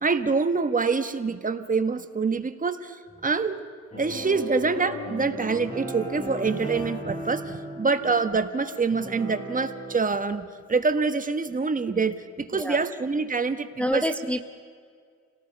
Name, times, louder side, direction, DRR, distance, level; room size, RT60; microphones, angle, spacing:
voice 1, 0.0-3.6 4.0-14.0, right 4 dB, 25° right, 9 dB, 1.4 m, -26 dB
sound 1, 3.9-10.0, equal, 20° left, 7.8 m, -36 dB
voice 2, 12.5-12.9 13.8-14.5, equal, 5° left, 6 dB, 1.0 m, -27 dB
29.0 x 18.0 x 5.3 m, 2.1 s
cardioid pair, 90°, 30 cm